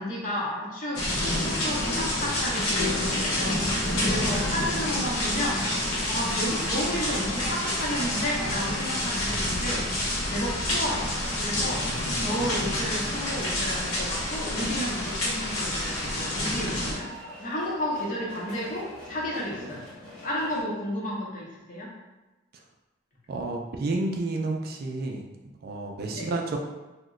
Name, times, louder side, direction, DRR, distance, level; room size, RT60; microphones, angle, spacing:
voice 1, 0.0-3.6 4.0-5.6 6.1-9.9 10.3-11.1 11.4-17.1 17.4-19.8 20.2-21.9 26.1-26.3, equal, 40° left, -4 dB, 0.7 m, -32 dB
sound 1, 1.0-16.9, left 1 dB, 85° left, 0.9 m, -28 dB
sound 2, 1.1-20.6, equal, 5° left, 0.6 m, -43 dB
voice 2, 23.3-25.2 25.6-26.6, right 2 dB, 45° right, 1 dB, 0.3 m, -30 dB
2.9 x 2.1 x 3.6 m, 1.1 s
head